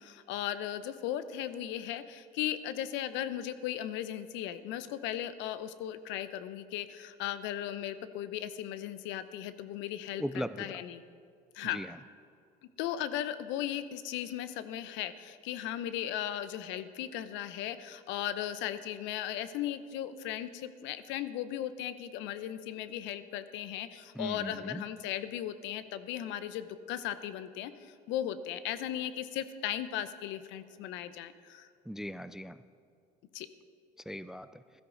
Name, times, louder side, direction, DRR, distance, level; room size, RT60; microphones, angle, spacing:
voice 1, 0.0-11.0 11.5-11.8 12.8-31.7 33.3-33.5, left 11 dB, 65° left, 13 dB, 0.8 m, -37 dB
voice 2, 10.2-10.7 11.7-11.9 24.2-24.8 31.9-32.6 34.1-34.5, equal, ahead, 14 dB, 0.4 m, -38 dB
15.5 x 13.0 x 4.0 m, 2.3 s
hypercardioid pair, 80°, 21 cm